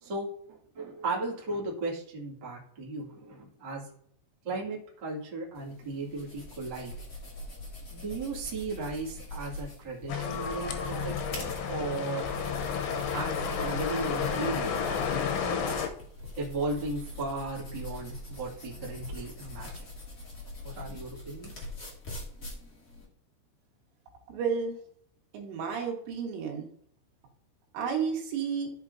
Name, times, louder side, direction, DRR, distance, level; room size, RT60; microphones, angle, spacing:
voice 1, 0.0-3.9 4.4-6.9 7.9-12.3 13.1-15.6 16.4-19.9 20.6-21.5, right 2 dB, 40° right, -4 dB, 1.8 m, -36 dB
sound 1, 5.5-23.0, left 1 dB, 55° left, 0.9 m, -42 dB
sound 2, 10.1-15.9, left 7 dB, 75° left, 2.8 m, -32 dB
voice 2, 24.3-24.7 25.3-26.7 27.7-28.7, right 6 dB, 80° right, 1 dB, 4.1 m, -31 dB
14.5 x 5.9 x 2.7 m, 0.64 s
omnidirectional pair, 5.6 m